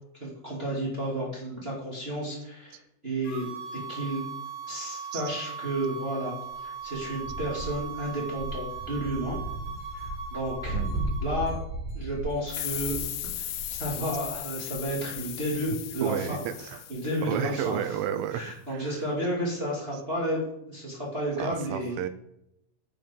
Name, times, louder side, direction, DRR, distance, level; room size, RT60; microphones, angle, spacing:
voice 1, 0.2-2.8 3.0-3.4 3.9-4.2 4.7-6.3 6.6-9.4 9.9-10.8 11.2-11.6 11.9-13.0 13.4-16.4 16.9-17.8 18.3-22.0, right 1 dB, 25° right, -4 dB, 1.4 m, -32 dB
sound 1, 3.2-11.4, right 5 dB, 60° left, 5.7 m, -39 dB
sound 2, 6.8-14.3, right 2 dB, 10° left, 4.8 m, -35 dB
sound 3, 12.5-17.8, left 12 dB, 80° left, 3.0 m, -37 dB
voice 2, 16.0-16.8 17.2-19.1 21.4-22.1, right 9 dB, 80° right, 10 dB, 3.1 m, -32 dB
11.0 x 7.8 x 5.4 m, 0.82 s
omnidirectional pair, 5.6 m